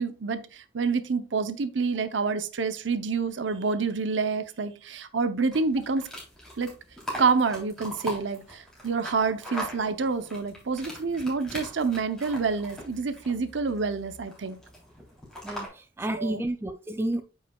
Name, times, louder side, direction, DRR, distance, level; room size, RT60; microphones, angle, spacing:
voice 1, 0.0-6.0 6.6-6.7 7.2-14.6 16.2-16.4, right 4 dB, 80° right, 0.7 m, -28 dB
sound 1, 5.5-15.7, equal, 5° left, 3.2 m, -41 dB
voice 2, 15.4-17.2, right 1 dB, 10° right, 0.3 m, -31 dB
8.6 x 5.7 x 2.3 m
head